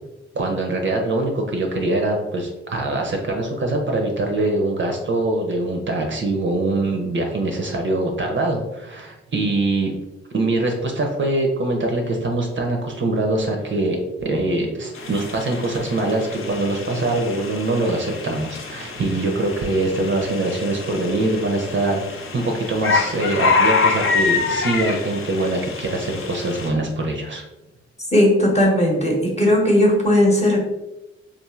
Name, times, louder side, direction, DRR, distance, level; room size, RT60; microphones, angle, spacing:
voice 1, 0.3-9.9 10.3-27.4, right 2 dB, 40° right, 2 dB, 0.5 m, -23 dB
sound 1, 14.9-26.7, left 4 dB, 45° left, 0.6 m, -26 dB
voice 2, 28.1-30.6, left 1 dB, 20° left, -2 dB, 1.0 m, -17 dB
3.0 x 2.4 x 2.3 m, 1.0 s
supercardioid pair, 40°, 30 cm